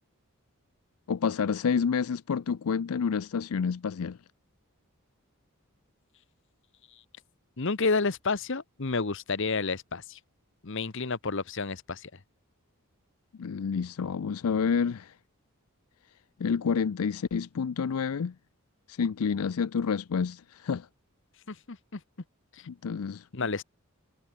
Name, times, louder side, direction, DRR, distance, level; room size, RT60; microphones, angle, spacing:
voice 1, 1.1-4.2 13.4-15.2 16.4-18.3 18.9-20.9 22.7-23.5, left 6 dB, 75° left, 0.4 m, -29 dB
voice 2, 7.6-10.2 10.6-12.2 21.5-22.0 22.5-22.7 23.3-23.6, left 4 dB, 55° left, 1.0 m, -30 dB
head